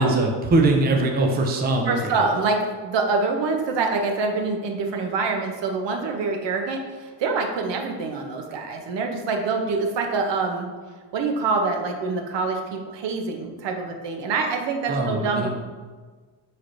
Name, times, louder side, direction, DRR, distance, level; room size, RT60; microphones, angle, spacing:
voice 1, 0.0-2.2 14.9-15.5, right 2 dB, 20° right, 2 dB, 0.5 m, -21 dB
voice 2, 1.9-10.7 11.1-15.5, right 4 dB, 65° right, 3 dB, 0.7 m, -25 dB
5.7 x 3.3 x 2.5 m, 1.4 s
cardioid pair, 115°, 46 cm